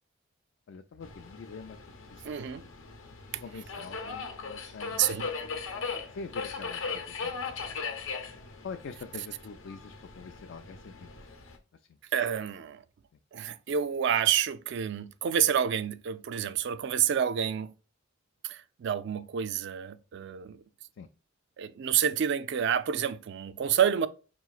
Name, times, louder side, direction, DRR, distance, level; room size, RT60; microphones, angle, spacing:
voice 1, 0.7-1.8 2.1-2.3 3.4-5.2 6.1-7.8 8.6-11.4 11.7-12.0 21.0-21.1, left 4 dB, 65° left, 0.4 m, -45 dB
Subway metro underground, 1.0-11.6, left 5 dB, 85° left, 0.8 m, -39 dB
voice 2, 2.2-2.7 5.0-5.3 12.1-12.8 13.3-17.7 18.4-20.6 21.6-24.1, right 8 dB, 60° right, 0.3 m, -28 dB
5.5 x 3.0 x 2.3 m
head